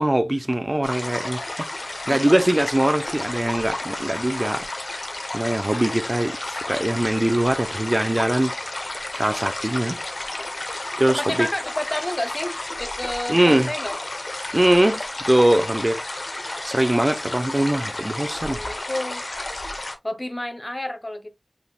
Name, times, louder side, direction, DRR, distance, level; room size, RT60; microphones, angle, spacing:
voice 1, 0.0-1.7 2.1-4.7 5.3-8.5 9.1-10.0 11.0-11.5 13.3-13.7 14.5-16.1 16.6-18.6, right 1 dB, 25° right, 0.5 m, -22 dB
sound 1, 0.8-19.9, left 2 dB, 65° left, 1.0 m, -32 dB
voice 2, 2.1-2.5 11.1-14.0 18.4-19.2 20.0-21.3, left 1 dB, 30° left, 0.8 m, -30 dB
5.8 x 3.5 x 2.4 m
wide cardioid pair, 55°, 0 cm